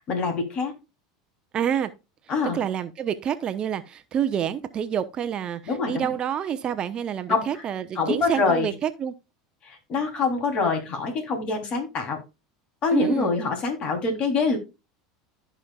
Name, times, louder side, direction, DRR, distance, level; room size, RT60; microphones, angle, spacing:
voice 1, 0.1-0.7 2.3-2.6 5.7-6.1 7.3-7.6 8.0-8.7 9.6-12.2 12.8-14.6, left 4 dB, 45° left, 3.4 m, -25 dB
voice 2, 1.5-1.9 2.5-9.1 12.9-13.4, right 9 dB, 40° right, 0.9 m, -27 dB
15.5 x 5.2 x 2.4 m
hypercardioid pair, 90°, 2 cm